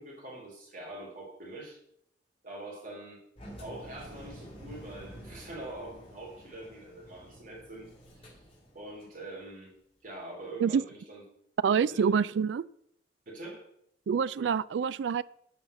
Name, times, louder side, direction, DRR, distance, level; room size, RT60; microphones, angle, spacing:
voice 1, 0.0-1.8 2.4-3.2 3.6-8.4 8.7-9.7 10.0-11.2 11.9-12.0 13.2-13.6, right 1 dB, 50° right, -3 dB, 3.4 m, -44 dB
Engine, 3.4-9.2, equal, 35° left, 3.6 m, -49 dB
voice 2, 11.6-12.6 14.1-15.2, right 6 dB, 90° right, 18 dB, 0.3 m, -26 dB
8.6 x 5.6 x 7.8 m, 0.71 s
head